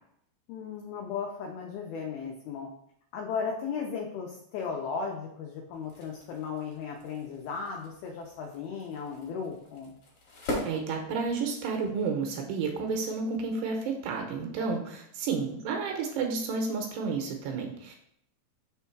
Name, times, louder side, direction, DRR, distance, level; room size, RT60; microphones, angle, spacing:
voice 1, 0.5-2.7 3.1-9.9, left 6 dB, 85° left, 0 dB, 2.1 m, -36 dB
sound 1, 5.7-11.7, equal, 60° left, 1.5 m, -41 dB
voice 2, 10.6-18.0, right 4 dB, 80° right, 2 dB, 2.7 m, -31 dB
6.4 x 3.4 x 4.5 m, 0.72 s
omnidirectional pair, 5.2 m